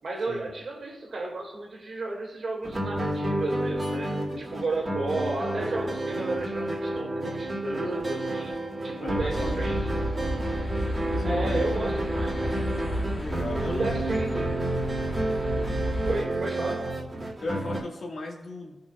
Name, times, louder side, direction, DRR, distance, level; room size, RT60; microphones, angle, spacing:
voice 1, 0.0-8.5 8.8-10.0 11.2-12.5 13.7-14.5 16.1-16.9, right 2 dB, 65° right, -1 dB, 1.9 m, -33 dB
sound 1, 2.6-17.8, right 1 dB, 30° right, 1.9 m, -30 dB
voice 2, 9.0-9.9 11.1-11.7 13.1-14.0 14.3-14.5 15.6-15.7 16.6-16.7 17.4-18.8, left 2 dB, 70° left, -2 dB, 1.6 m, -37 dB
sound 2, 9.1-16.2, equal, 25° left, 1.9 m, -32 dB
15.0 x 5.5 x 2.3 m, 1.1 s
wide cardioid pair, 110°, 0 cm